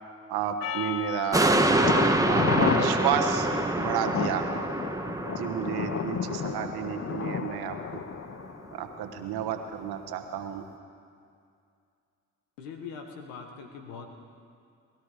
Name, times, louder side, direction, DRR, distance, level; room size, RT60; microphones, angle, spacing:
voice 1, 0.3-1.6 2.3-3.5 3.8-4.6 5.3-8.0 8.7-10.6, right 9 dB, 70° right, 7 dB, 1.3 m, -31 dB
Percussion, 0.6-5.2, left 8 dB, 60° left, 1.1 m, -40 dB
sound 1, 1.3-8.0 8.4-8.5, right 2 dB, 10° right, 1.3 m, -27 dB
Thunder, 1.8-9.5 9.8-9.9 10.4-10.5, left 7 dB, 35° left, 0.7 m, -32 dB
voice 2, 12.6-14.1, left 5 dB, 85° left, 3 dB, 1.5 m, -41 dB
20.0 x 12.5 x 5.0 m, 2.3 s
hypercardioid pair, 45°, 39 cm